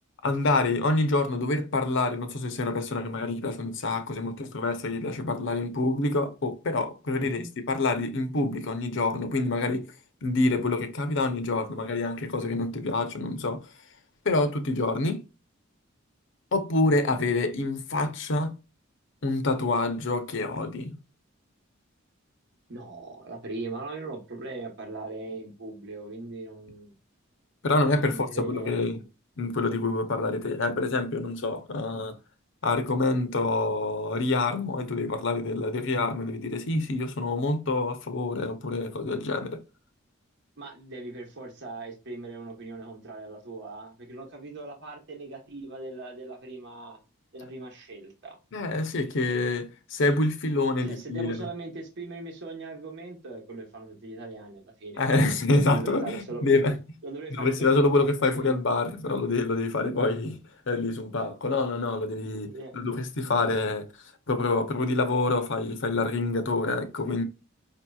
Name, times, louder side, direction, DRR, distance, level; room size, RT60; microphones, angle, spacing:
voice 1, 0.2-9.9 10.2-13.7 14.2-15.2 16.5-18.5 19.2-21.0 27.6-29.0 29.4-32.2 32.6-39.6 48.5-51.5 55.0-56.7 57.4-60.4 60.7-63.9 64.3-67.2, left 2 dB, 65° left, 0.7 m, -27 dB
voice 2, 7.2-7.5 22.7-26.9 28.0-28.8 40.6-47.0 47.3-48.4 50.8-55.3 55.7-56.7 57.0-58.6 62.3-62.8, right 3 dB, 60° right, 1.0 m, -40 dB
5.2 x 2.8 x 2.3 m
head